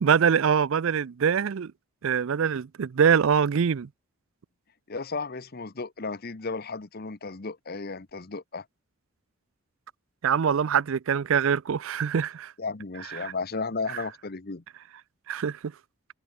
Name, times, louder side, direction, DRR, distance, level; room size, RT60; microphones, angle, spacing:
voice 1, 0.0-1.7 2.0-3.9 10.2-12.5 13.2-13.3 15.3-15.6, right 7 dB, 65° right, 0.4 m, -24 dB
voice 2, 4.9-8.6 12.6-14.6, left 4 dB, 45° left, 0.9 m, -34 dB
head